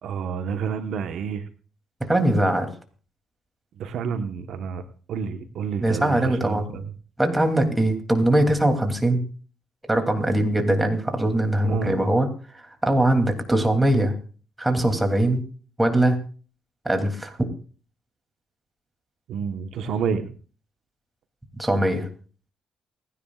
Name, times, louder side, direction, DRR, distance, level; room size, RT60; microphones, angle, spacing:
voice 1, 0.0-1.5 3.8-6.9 11.6-12.0 19.3-20.3, right 6 dB, 75° right, 8 dB, 1.2 m, -29 dB
voice 2, 2.1-2.7 5.8-6.7 7.2-9.3 9.9-14.1 14.6-15.4 15.8-16.2 16.8-17.5 21.6-22.1, right 1 dB, 10° right, 4 dB, 2.9 m, -21 dB
28.5 x 10.5 x 2.5 m, 0.39 s
cardioid pair, 90°, 0 cm